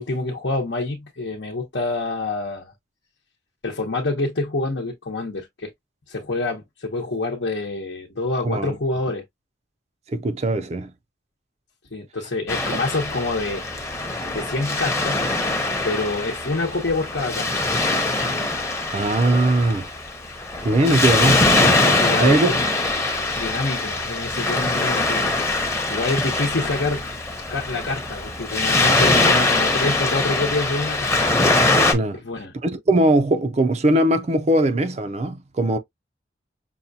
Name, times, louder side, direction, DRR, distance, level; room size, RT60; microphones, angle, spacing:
voice 1, 0.0-2.7 3.6-5.7 6.1-9.2 11.9-13.6 14.3-15.3 15.8-17.5 21.8-22.6 23.4-27.1 27.5-31.3 32.2-32.5, left 2 dB, 80° left, 0.9 m, -27 dB
voice 2, 8.4-8.8 10.1-10.9 18.9-19.9 20.6-21.4 21.9-22.6 31.9-32.2 32.6-35.8, right 1 dB, 40° right, 0.4 m, -20 dB
Waves surf, 12.5-31.9, left 2 dB, 15° left, 0.7 m, -22 dB
5.6 x 2.2 x 2.7 m
head